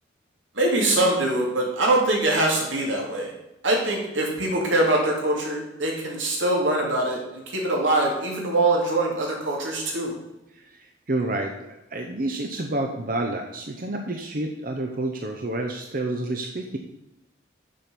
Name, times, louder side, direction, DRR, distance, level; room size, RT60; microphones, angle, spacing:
voice 1, 0.6-3.3 3.6-10.2, right 2 dB, 85° right, -1 dB, 2.7 m, -23 dB
voice 2, 10.5-16.8, right 2 dB, 45° right, 3 dB, 0.8 m, -29 dB
7.5 x 5.9 x 6.9 m, 0.93 s
head